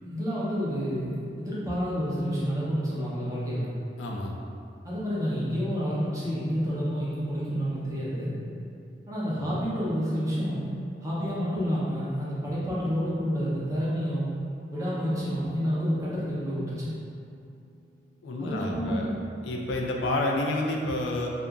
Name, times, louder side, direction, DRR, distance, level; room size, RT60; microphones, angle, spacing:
voice 1, 0.0-3.7 4.8-8.3 9.1-10.7 11.0-14.3 14.7-16.9 18.4-19.2, equal, 20° right, -8 dB, 0.6 m, -29 dB
voice 2, 4.0-4.3 18.2-19.1 19.4-21.3, left 2 dB, 85° left, 0 dB, 0.3 m, -29 dB
Acoustic guitar, 14.7-19.9, right 2 dB, ahead, 1.0 m, -51 dB
2.8 x 2.4 x 2.3 m, 2.5 s
head